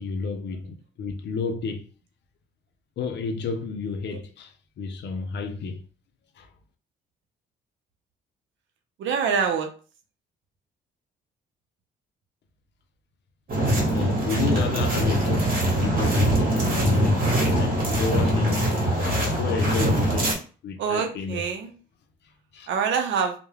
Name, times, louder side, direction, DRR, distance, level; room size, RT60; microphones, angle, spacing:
voice 1, 0.0-1.8 3.0-5.8 6.4-6.5 13.9-17.3 17.6-21.4 22.5-22.7, left 5 dB, 60° left, 0.5 m, -31 dB
voice 2, 9.0-9.7 20.8-21.7 22.7-23.3, right 6 dB, 70° right, 0.6 m, -25 dB
sound 1, 13.5-20.3, right 1 dB, 45° right, 1.2 m, -22 dB
2.3 x 2.1 x 3.2 m
cardioid pair, 90°, 20 cm